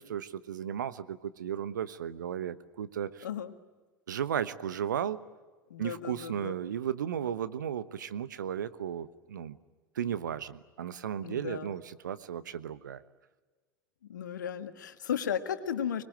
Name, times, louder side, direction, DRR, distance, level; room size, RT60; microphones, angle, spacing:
voice 1, 0.0-3.2 4.1-5.2 5.8-9.6 9.9-13.0, right 9 dB, 70° right, 14 dB, 1.1 m, -35 dB
voice 2, 3.2-3.5 5.7-6.5 11.2-11.7 14.1-16.0, left 8 dB, 70° left, 9 dB, 1.7 m, -35 dB
25.0 x 21.5 x 9.0 m, 1.4 s
figure-of-eight pair, 80°, 10 cm